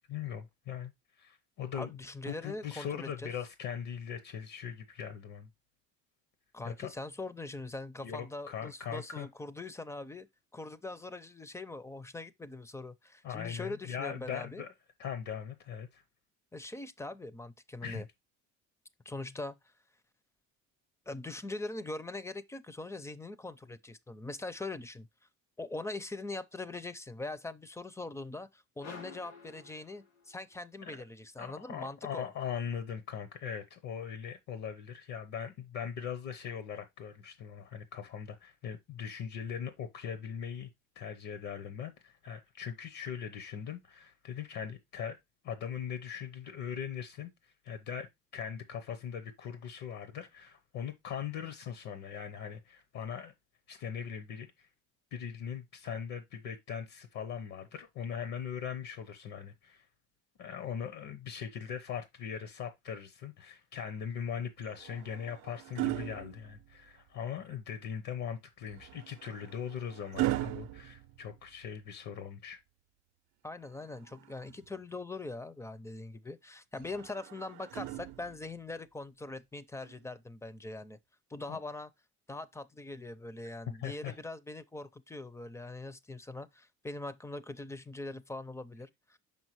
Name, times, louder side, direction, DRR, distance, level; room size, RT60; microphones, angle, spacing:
voice 1, 0.1-2.0 2.3-5.5 6.6-6.9 8.0-9.3 13.2-14.7 15.0-16.0 17.8-18.0 30.8-31.0 31.4-40.7 41.0-45.2 45.4-53.3 53.7-54.7 55.1-59.9 60.4-72.6 81.5-81.6 83.8-84.2, left 8 dB, 65° left, 0.9 m, -40 dB
voice 2, 1.7-3.3 6.5-10.3 10.5-14.6 16.5-18.1 19.1-19.6 21.1-25.1 25.6-32.3 73.4-81.0 81.3-81.9 82.3-89.2, left 2 dB, 10° left, 0.5 m, -42 dB
sound 1, 28.8-30.6, left 4 dB, 85° left, 3.0 m, -50 dB
sound 2, 64.6-67.1 68.7-71.9 73.6-74.8 76.8-78.6 79.8-80.0, right 16 dB, 75° right, 0.6 m, -39 dB
5.7 x 5.5 x 3.0 m
cardioid pair, 100°, 30 cm